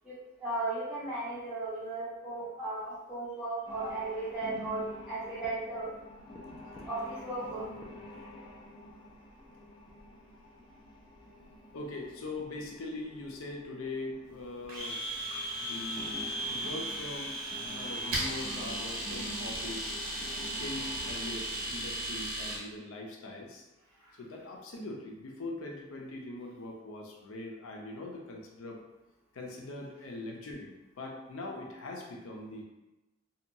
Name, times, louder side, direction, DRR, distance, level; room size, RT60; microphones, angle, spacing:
voice 1, 0.0-5.9 6.9-7.6, right 2 dB, 5° right, -11 dB, 1.0 m, -36 dB
sound 1, 3.7-22.3, left 1 dB, 25° left, 0.4 m, -48 dB
voice 2, 11.7-15.0 15.6-17.4 17.7-20.0 20.5-23.6 24.2-28.8 29.3-32.6, left 2 dB, 90° left, 0 dB, 0.5 m, -42 dB
Domestic sounds home sounds, 14.7-22.6, right 1 dB, 50° right, 0.8 m, -36 dB
2.7 x 2.2 x 2.6 m, 1.0 s
head